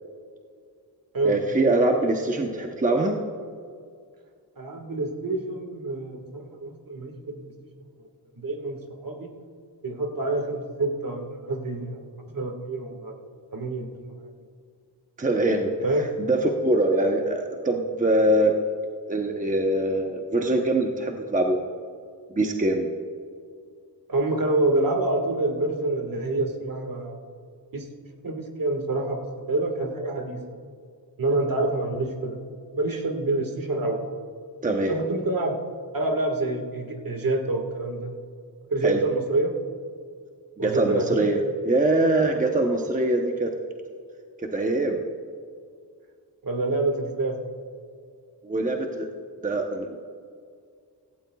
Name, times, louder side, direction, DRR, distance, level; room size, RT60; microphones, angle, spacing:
voice 1, 1.2-3.1 15.2-18.5 19.1-21.6 22.3-23.0 34.6-34.9 38.8-39.0 40.6-43.5 44.4-45.0 48.4-49.1 49.4-50.0, right 2 dB, 20° right, 2 dB, 0.9 m, -23 dB
voice 2, 4.6-7.4 8.4-9.3 9.8-12.0 12.3-13.1 13.5-14.1 15.8-16.1 24.1-27.1 27.7-27.9 28.2-30.4 31.2-32.4 32.7-34.0 34.9-35.6 35.9-38.1 38.7-39.6 40.6-41.3 46.4-47.4, right 2 dB, 55° right, 3 dB, 1.8 m, -27 dB
16.5 x 16.0 x 2.3 m, 2.2 s
wide cardioid pair, 110°, 41 cm